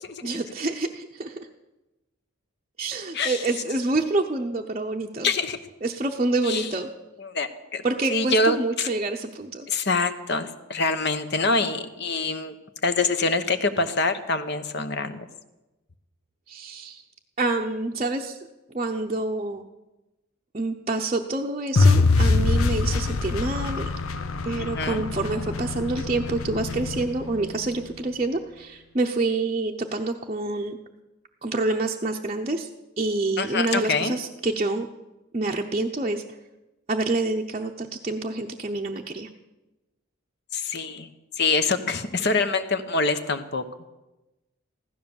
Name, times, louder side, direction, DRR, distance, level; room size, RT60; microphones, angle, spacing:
voice 1, 0.2-1.5 2.8-5.3 5.8-6.9 7.8-9.7 16.5-17.0 17.4-18.4 18.7-19.7 20.5-23.9 24.4-30.8 31.4-32.7 33.0-34.9 35.3-36.4 36.9-39.3, right 2 dB, 30° right, -1 dB, 0.7 m, -27 dB
voice 2, 5.2-5.6 6.5-6.7 7.2-7.8 8.1-8.9 9.7-12.5 12.8-15.3 24.6-25.0 33.4-34.1 40.5-41.1 41.4-43.6, left 3 dB, 50° left, 9 dB, 1.0 m, -25 dB
sound 1, 21.8-27.9, left 3 dB, 80° left, 0.9 m, -24 dB
15.5 x 13.0 x 7.1 m, 1.0 s
head